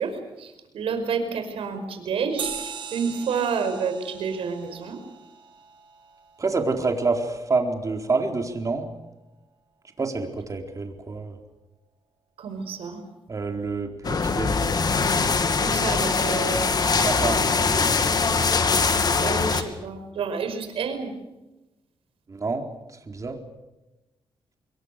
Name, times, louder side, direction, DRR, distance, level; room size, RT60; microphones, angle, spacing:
voice 1, 0.0-5.0 12.4-13.0 15.6-16.8 19.2-21.1, right 5 dB, 80° right, 8 dB, 5.3 m, -29 dB
sound 1, 2.4-7.3, right 6 dB, 55° right, 4.1 m, -39 dB
voice 2, 6.4-8.9 10.0-11.4 13.3-14.6 16.9-18.0 22.3-22.6 23.1-23.4, right 3 dB, 35° right, 4 dB, 4.3 m, -27 dB
sound 2, 14.0-19.6, left 4 dB, 45° left, 2.4 m, -22 dB
26.5 x 22.5 x 6.8 m, 1.0 s
cardioid pair, 90°, 10 cm